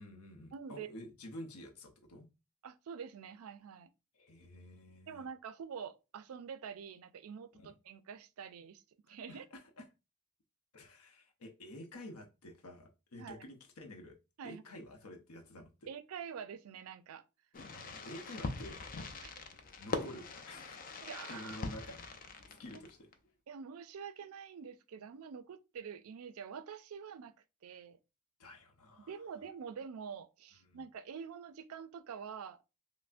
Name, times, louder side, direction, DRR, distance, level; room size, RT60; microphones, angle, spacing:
voice 1, 0.0-2.3 4.1-5.2 7.5-7.7 9.1-9.8 10.7-14.2 14.4-15.9 17.7-18.8 19.8-22.1 22.5-23.1 28.4-29.2 30.6-30.8, left 1 dB, 85° left, 0.7 m, -50 dB
voice 2, 0.5-0.9 2.6-3.9 5.1-9.4 13.2-13.4 14.4-14.6 15.9-17.2 19.2-19.3 21.0-21.6 22.7-22.8 23.5-27.3 27.6-28.0 29.1-32.6, right 6 dB, 75° right, 0.4 m, -46 dB
Fireworks, 17.5-23.1, left 3 dB, 40° left, 0.5 m, -42 dB
5.5 x 2.0 x 2.5 m
head